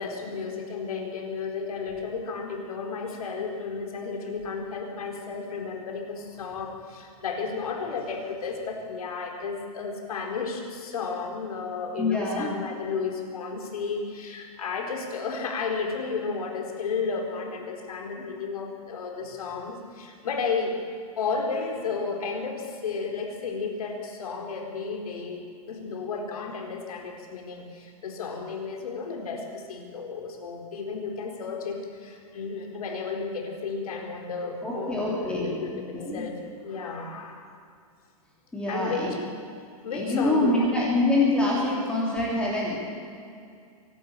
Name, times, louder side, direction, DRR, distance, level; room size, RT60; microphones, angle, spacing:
voice 1, 0.0-20.8 21.1-37.5 38.7-39.2 39.8-40.7, left 5 dB, 75° left, 2 dB, 4.5 m, -33 dB
voice 2, 12.0-12.5 34.6-35.7 35.9-36.2 38.5-39.1 39.9-42.8, left 2 dB, 5° left, -5 dB, 3.0 m, -25 dB
24.0 x 12.5 x 8.7 m, 2.3 s
supercardioid pair, 170°, 19 cm